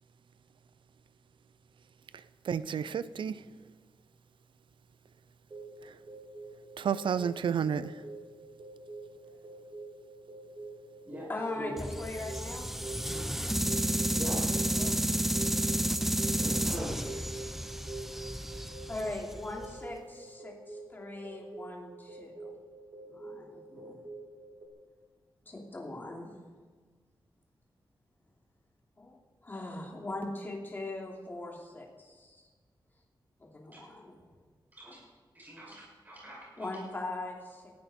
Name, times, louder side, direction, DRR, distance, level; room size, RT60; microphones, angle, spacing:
voice 1, 2.1-3.5 5.8-6.0 6.8-8.0, right 7 dB, 80° right, 15 dB, 0.6 m, -32 dB
sound 1, 5.5-24.7, right 2 dB, 40° right, 2.6 m, -46 dB
voice 2, 11.3-12.7 14.4-15.0 18.9-22.5 23.1-24.0 25.4-26.3 29.0-29.2 29.4-32.5 33.4-34.1 36.6-37.7, left 2 dB, 25° left, -1 dB, 2.8 m, -40 dB
sound 2, 11.8-19.9, right 1 dB, 5° right, 0.6 m, -31 dB
voice 3, 16.3-17.0 33.7-33.8 34.7-35.0 35.3-36.7, equal, 20° right, -6 dB, 6.4 m, -41 dB
19.5 x 15.0 x 4.4 m, 1.5 s
wide cardioid pair, 165°, 8 cm